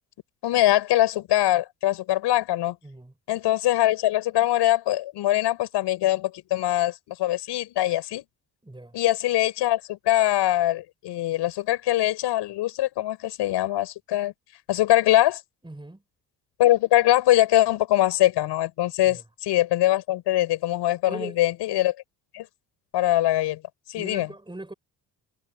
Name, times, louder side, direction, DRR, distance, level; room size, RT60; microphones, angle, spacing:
voice 1, 0.4-2.8 3.3-8.2 8.9-14.3 14.7-15.4 16.6-21.9 22.3-22.5 22.9-23.6 23.9-24.3, left 14 dB, 80° left, 6.0 m, -22 dB
voice 2, 2.8-3.1 8.6-9.0 15.6-16.0 19.0-19.2 21.1-21.4 24.0-24.7, right 2 dB, 10° right, 7.3 m, -39 dB
supercardioid pair, 75°, 41 cm